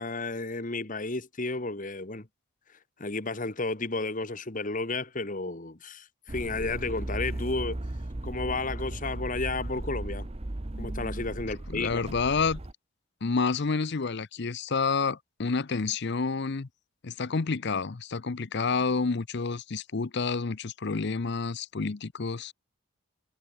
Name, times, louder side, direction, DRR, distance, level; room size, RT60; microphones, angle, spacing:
voice 1, 0.0-2.3 3.0-7.8 8.2-10.3 10.8-12.0, left 3 dB, 40° left, 1.6 m, -32 dB
sound 1, 6.3-12.7, right 1 dB, 30° right, 0.9 m, -36 dB
voice 2, 11.7-12.6 13.2-16.7 17.0-22.5, left 4 dB, 55° left, 0.7 m, -29 dB
head